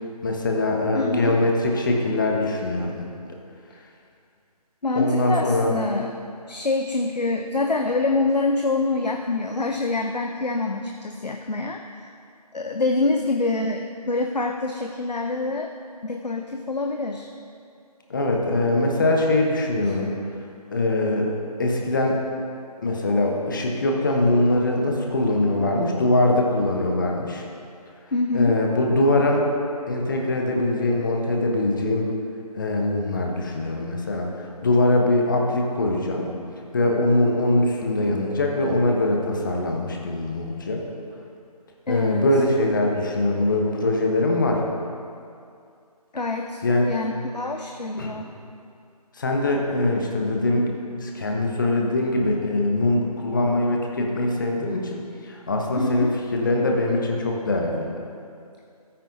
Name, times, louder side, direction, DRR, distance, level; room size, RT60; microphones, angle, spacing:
voice 1, 0.2-3.3 4.9-5.8 18.1-20.1 20.7-21.3 21.6-22.2 22.8-27.4 28.3-29.4 29.9-32.1 32.5-36.3 36.7-40.8 41.9-44.6 46.6-46.9 48.0-48.2 49.2-50.7 51.0-57.9, left 2 dB, 30° left, 0 dB, 1.0 m, -22 dB
voice 2, 0.9-1.4 4.8-6.2 6.5-12.1 12.5-15.7 16.0-17.3 19.9-20.0 28.1-28.6 41.9-42.3 46.1-46.6 46.9-48.3 55.7-56.1, left 3 dB, 85° left, 4 dB, 0.7 m, -26 dB
14.0 x 9.0 x 2.6 m, 2.4 s
figure-of-eight pair, 155°, 20 cm